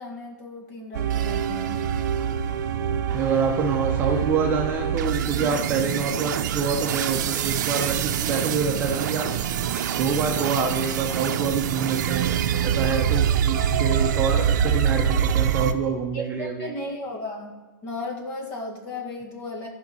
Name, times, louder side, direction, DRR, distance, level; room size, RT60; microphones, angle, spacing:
voice 1, 0.0-1.8 16.1-17.6 17.8-19.7, left 2 dB, 30° left, 2 dB, 2.0 m, -35 dB
sound 1, 0.9-15.7, right 9 dB, 60° right, 0.7 m, -25 dB
voice 2, 3.1-9.3 10.0-12.3 12.6-16.7, right 5 dB, 20° right, 0 dB, 0.9 m, -26 dB
13.5 x 5.3 x 5.5 m, 1.2 s
hypercardioid pair, 155°, 11 cm